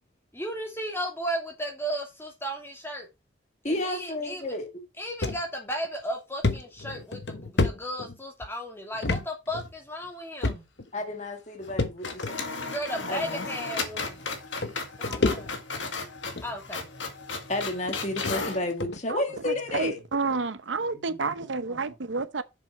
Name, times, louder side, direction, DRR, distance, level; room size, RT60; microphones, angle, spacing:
voice 1, 0.3-3.1 3.6-4.6 5.0-10.7 12.7-14.3 15.0-15.6 16.4-16.9 20.8-22.0, equal, 10° left, 2.6 m, -35 dB
voice 2, 3.6-4.7 10.9-12.4 13.1-13.5 17.5-20.0, left 2 dB, 35° left, 1.8 m, -31 dB
sound 1, 5.2-5.4 5.8-5.9 6.4-8.5 9.0-9.2 9.5-9.7 10.4-10.9 11.8-12.3 13.2-13.3 14.3-14.4 14.6-15.8 16.2-16.5 17.3-17.4 17.9-18.0 18.2-18.4 18.8-19.0, left 2 dB, 60° left, 1.0 m, -28 dB
sound 2, 8.9-9.7 10.0-10.1 11.6-11.8 12.0-18.6, left 4 dB, 75° left, 2.0 m, -35 dB
voice 3, 19.1-22.4, right 4 dB, 75° right, 0.8 m, -30 dB
7.3 x 6.9 x 4.7 m
head